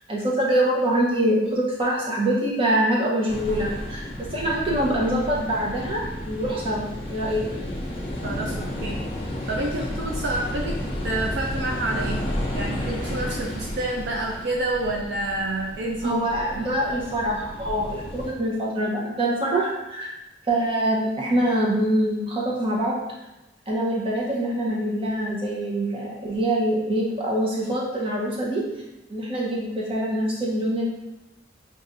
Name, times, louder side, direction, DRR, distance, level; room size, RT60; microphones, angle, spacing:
voice 1, 0.1-6.8 7.1-7.4 16.0-20.1 20.5-23.0 23.7-28.6 29.1-30.8, right 1 dB, 30° right, -4 dB, 0.8 m, -24 dB
sound 1, 3.3-18.3, left 1 dB, 30° left, 0.6 m, -32 dB
voice 2, 8.2-9.1 9.5-10.8 11.0-16.7, right 2 dB, 65° right, -1 dB, 0.4 m, -29 dB
5.4 x 2.5 x 2.5 m, 0.97 s
head